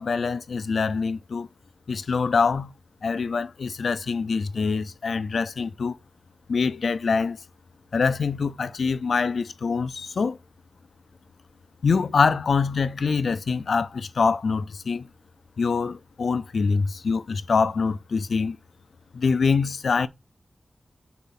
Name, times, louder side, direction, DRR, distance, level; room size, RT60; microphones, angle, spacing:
voice 1, 0.0-1.5 1.9-2.7 3.0-6.0 6.5-7.4 7.9-10.4 11.8-15.1 15.6-18.6 19.1-20.1, left 5 dB, 85° left, 0.5 m, -24 dB
5.9 x 4.2 x 5.7 m
wide cardioid pair, 115°, 0 cm